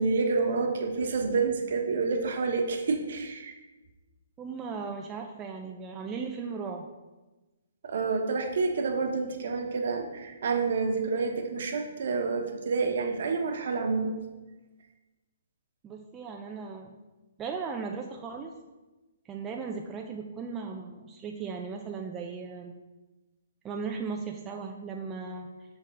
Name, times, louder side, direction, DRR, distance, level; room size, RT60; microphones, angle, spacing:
voice 1, 0.0-3.5 7.8-14.1, right 4 dB, 60° right, 3 dB, 1.1 m, -28 dB
voice 2, 4.4-6.9 15.8-16.9 17.4-18.5 19.3-22.8 23.6-25.5, right 5 dB, 15° right, 1 dB, 0.4 m, -37 dB
6.7 x 3.6 x 6.1 m, 1.1 s
hypercardioid pair, 165°, 0 cm